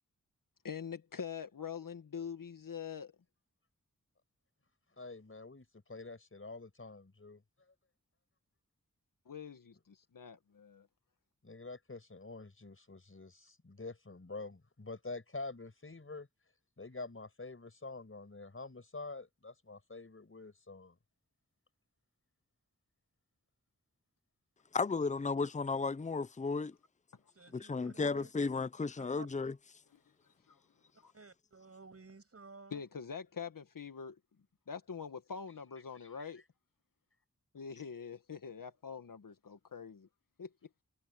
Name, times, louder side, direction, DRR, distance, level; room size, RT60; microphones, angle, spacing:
voice 1, 0.6-3.1 9.3-10.9 29.9-30.0 30.5-30.6 31.0-31.1 32.7-34.2 34.7-36.4 37.5-40.1 40.4-40.7, left 6 dB, 80° left, 1.9 m, -44 dB
voice 2, 5.0-7.4 11.4-16.3 16.8-21.0, left 3 dB, 40° left, 6.1 m, -47 dB
voice 3, 24.7-26.7 27.5-29.5, left 4 dB, 25° left, 0.6 m, -34 dB
voice 4, 27.3-28.3 29.0-29.3 31.1-32.8, right 4 dB, 45° right, 6.8 m, -54 dB
cardioid pair, 55°, 32 cm